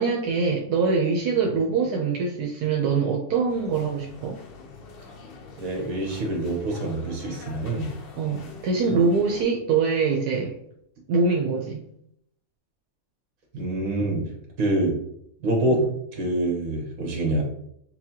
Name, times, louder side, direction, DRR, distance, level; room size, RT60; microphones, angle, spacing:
voice 1, 0.0-4.4 8.2-10.5 11.1-11.8 15.7-15.9, right 4 dB, 80° right, 0 dB, 1.2 m, -24 dB
sound 1, 3.5-9.4, left 4 dB, 65° left, 0.5 m, -45 dB
voice 2, 5.6-7.9 13.5-14.2 14.6-15.0 15.4-17.4, right 1 dB, 65° right, 0 dB, 1.5 m, -26 dB
5.8 x 2.2 x 2.8 m, 0.71 s
omnidirectional pair, 1.6 m